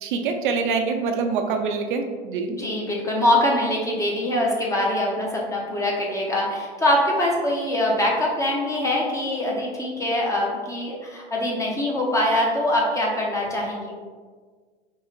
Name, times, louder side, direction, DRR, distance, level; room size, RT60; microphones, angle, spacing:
voice 1, 0.0-2.6, right 5 dB, 50° right, 5 dB, 0.4 m, -25 dB
voice 2, 2.6-13.9, left 1 dB, 10° left, -2 dB, 0.5 m, -23 dB
4.6 x 2.8 x 2.3 m, 1.5 s
figure-of-eight pair, 85°, 32 cm